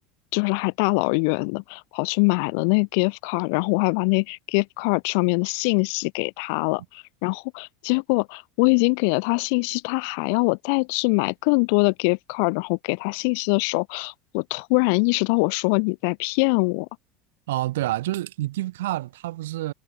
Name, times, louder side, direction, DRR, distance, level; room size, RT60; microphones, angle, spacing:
voice 1, 0.3-16.9, left 36 dB, 70° left, 1.2 m, -23 dB
voice 2, 17.5-19.7, right 16 dB, 90° right, 3.0 m, -28 dB
supercardioid pair, 125°, 0 cm